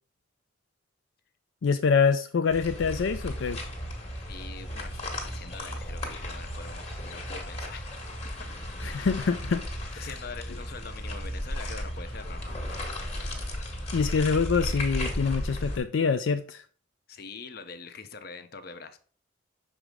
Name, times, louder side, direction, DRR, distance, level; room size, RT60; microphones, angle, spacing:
voice 1, 1.6-3.6 8.8-9.6 9.9-10.1 10.5-10.6 13.9-16.6, left 5 dB, 80° left, 0.4 m, -25 dB
sound 1, 2.5-15.8, left 1 dB, 35° left, 1.5 m, -35 dB
voice 2, 4.3-8.0 10.0-13.0 17.1-19.0, left 4 dB, 55° left, 0.8 m, -44 dB
6.1 x 5.0 x 3.7 m
head